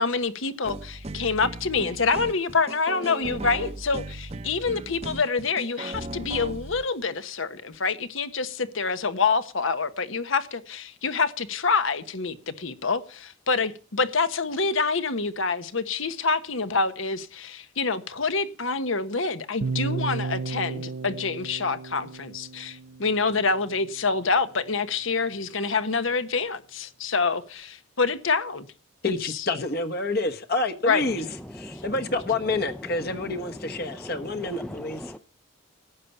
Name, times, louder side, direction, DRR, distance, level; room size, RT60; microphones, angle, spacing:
voice 1, 0.0-28.7 29.2-29.5 30.9-31.0, left 4 dB, 70° left, 1.2 m, -26 dB
sound 1, 0.6-7.0 7.7-7.8, right 2 dB, 30° right, 0.8 m, -37 dB
sound 2, 19.6-23.7, right 4 dB, 70° right, 0.6 m, -33 dB
voice 2, 29.0-31.2 31.5-35.1, left 2 dB, 45° left, 1.3 m, -28 dB
voice 3, 33.9-35.2, equal, 5° left, 0.5 m, -40 dB
12.5 x 8.9 x 6.8 m
head